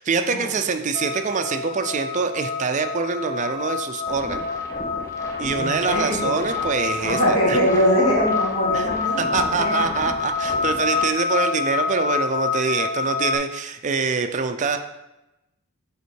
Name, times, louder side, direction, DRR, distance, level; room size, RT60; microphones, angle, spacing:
voice 1, 0.0-4.5 5.4-7.6 8.7-8.9 9.2-14.8, right 5 dB, 35° right, 7 dB, 0.4 m, -25 dB
sound 1, 0.9-13.4, left 5 dB, 40° left, 0.4 m, -27 dB
sound 2, 4.1-11.1, left 1 dB, 15° left, 0.8 m, -37 dB
voice 2, 5.5-6.4 7.1-9.9, equal, 85° left, -3 dB, 2.0 m, -22 dB
5.5 x 4.3 x 4.6 m, 0.95 s
head